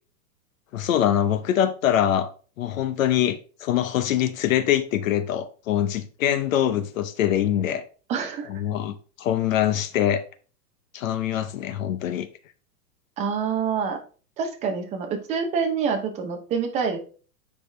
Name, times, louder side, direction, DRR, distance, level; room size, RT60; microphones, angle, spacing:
voice 1, 0.7-2.3 2.6-7.8 8.5-10.2 10.9-12.3, left 10 dB, 55° left, 0.8 m, -24 dB
voice 2, 8.1-8.5 13.2-14.0 14.4-17.0, right 6 dB, 15° right, 0.7 m, -26 dB
8.5 x 5.0 x 3.2 m
hypercardioid pair, 150°, 49 cm